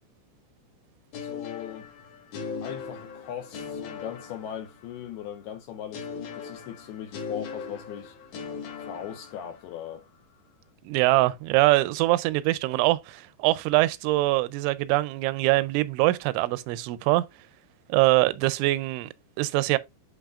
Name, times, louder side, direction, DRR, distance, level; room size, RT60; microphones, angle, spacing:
voice 1, 1.1-1.9 2.6-8.2 8.8-10.0, left 10 dB, 85° left, 2.2 m, -39 dB
sound 1, 1.1-5.1 5.9-9.8, left 5 dB, 60° left, 2.2 m, -39 dB
voice 2, 10.9-17.2 17.9-19.8, right 19 dB, 90° right, 2.9 m, -23 dB
11.5 x 3.9 x 2.4 m
omnidirectional pair, 5.3 m